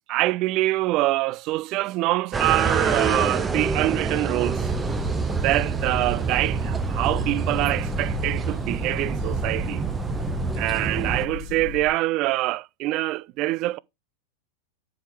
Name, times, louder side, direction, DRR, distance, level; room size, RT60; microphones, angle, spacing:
voice 1, 0.1-4.7 5.3-9.8 10.6-13.8, right 18 dB, 40° right, 0.4 m, -25 dB
sound 1, 2.3-11.3, right 5 dB, 15° right, 0.9 m, -27 dB
sound 2, 4.6-11.9, left 8 dB, 40° left, 1.1 m, -36 dB
10.5 x 4.9 x 4.7 m
figure-of-eight pair, 90°, 0 cm